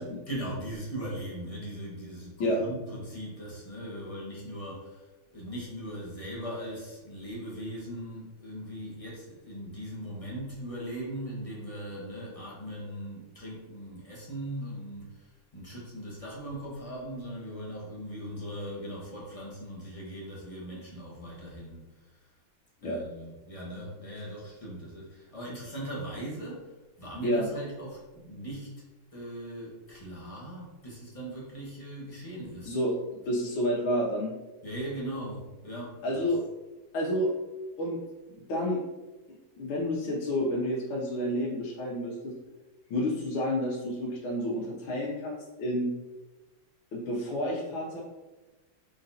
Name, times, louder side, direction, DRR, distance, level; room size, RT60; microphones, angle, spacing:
voice 1, 0.3-5.1 5.3-22.1 22.8-26.7 27.0-28.7 29.1-32.8 34.6-36.3, right 1 dB, 25° left, -5 dB, 0.8 m, -39 dB
voice 2, 32.6-32.9 33.2-34.3 36.0-36.4 36.9-37.3 37.8-38.0 38.5-38.8 39.6-42.3 42.9-45.9 46.9-48.0, equal, 90° left, -4 dB, 1.6 m, -29 dB
4.8 x 3.9 x 2.7 m, 1.1 s
omnidirectional pair, 2.2 m